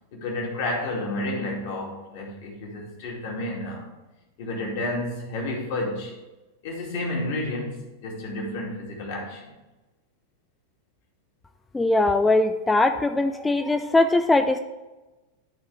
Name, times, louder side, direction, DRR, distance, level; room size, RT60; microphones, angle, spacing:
voice 1, 0.1-3.9 4.4-6.1 6.6-9.5, left 1 dB, 50° left, -1 dB, 2.4 m, -31 dB
voice 2, 11.7-14.6, left 2 dB, 10° left, 7 dB, 0.5 m, -21 dB
12.0 x 4.5 x 4.8 m, 1.1 s
figure-of-eight pair, 90°, 0 cm